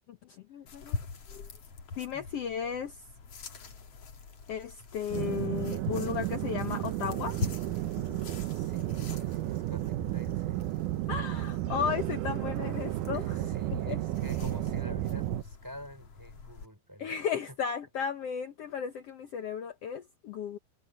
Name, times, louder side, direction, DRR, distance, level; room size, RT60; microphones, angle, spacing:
voice 1, 0.5-1.0 1.3-1.5 2.0-3.0 4.5-7.4 11.1-13.4 13.9-14.0 17.0-20.6, left 7 dB, 70° left, 1.5 m, -34 dB
sound 1, 0.7-16.7, left 4 dB, 45° left, 3.0 m, -43 dB
sound 2, 5.1-15.4, right 16 dB, 85° right, 1.9 m, -33 dB
voice 2, 8.5-10.7 13.1-17.2, equal, 5° right, 6.1 m, -48 dB
omnidirectional pair, 4.4 m